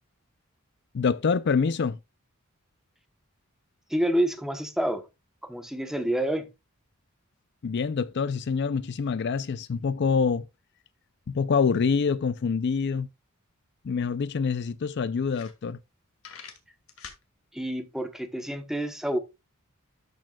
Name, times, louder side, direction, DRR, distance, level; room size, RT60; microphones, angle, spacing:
voice 1, 0.9-2.0 7.6-10.5 11.3-13.1 13.8-15.8, left 5 dB, 55° left, 0.4 m, -26 dB
voice 2, 3.9-5.1 5.4-6.5 17.5-19.2, right 1 dB, ahead, 1.0 m, -28 dB
sound 1, 13.9-14.0 14.3-14.4 14.9-15.0 15.2-15.9 16.2-17.2, left 6 dB, 75° left, 2.1 m, -45 dB
12.0 x 6.5 x 2.3 m
head